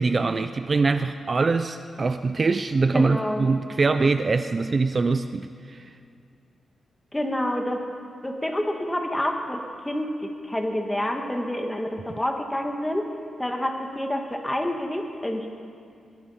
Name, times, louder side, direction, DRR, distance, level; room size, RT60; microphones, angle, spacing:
voice 1, 0.0-5.9, right 4 dB, 30° right, 9 dB, 0.6 m, -23 dB
voice 2, 2.9-3.5 7.1-7.8 8.2-13.1 13.4-15.5, left 1 dB, 10° left, 3 dB, 1.9 m, -28 dB
22.5 x 22.0 x 5.8 m, 2.3 s
wide cardioid pair, 150°, 0 cm